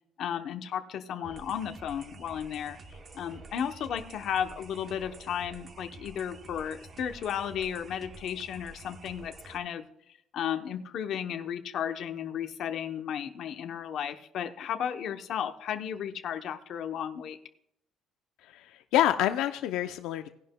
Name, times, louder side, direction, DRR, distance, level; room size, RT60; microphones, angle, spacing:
voice 1, 0.2-2.8 3.1-9.8 10.3-17.4, left 9 dB, 50° left, 7 dB, 0.8 m, -34 dB
sound 1, 1.2-9.6, right 3 dB, 25° right, 0.8 m, -49 dB
voice 2, 18.4-20.3, left 12 dB, 80° left, 9 dB, 0.5 m, -27 dB
17.0 x 11.0 x 2.2 m, 0.77 s
cardioid pair, 170°, 0 cm